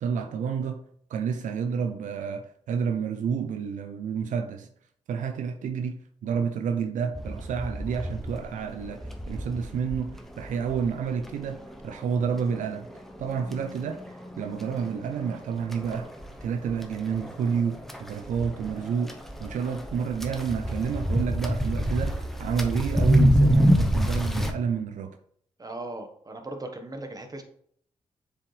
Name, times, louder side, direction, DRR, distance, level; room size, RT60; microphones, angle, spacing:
voice 1, 0.0-0.8 1.1-4.7 5.1-12.9 13.2-16.1 16.4-25.2, right 6 dB, 85° right, 0.5 m, -30 dB
sound 1, 7.1-24.5, equal, ahead, 0.9 m, -28 dB
voice 2, 25.6-27.4, right 2 dB, 30° right, 1.3 m, -38 dB
7.0 x 4.8 x 3.3 m
cardioid pair, 60°, 13 cm